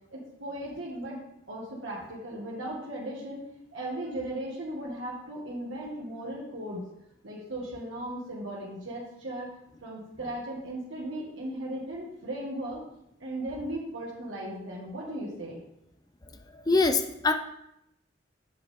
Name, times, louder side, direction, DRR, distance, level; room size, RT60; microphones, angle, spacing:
voice 1, 0.1-1.2 1.5-3.4 3.7-6.9 7.2-9.5 9.8-12.8 13.2-15.6, right 1 dB, 85° right, -5 dB, 1.9 m, -37 dB
voice 2, 16.5-17.3, left 3 dB, 20° left, 7 dB, 0.6 m, -24 dB
7.7 x 7.5 x 3.6 m, 0.80 s
head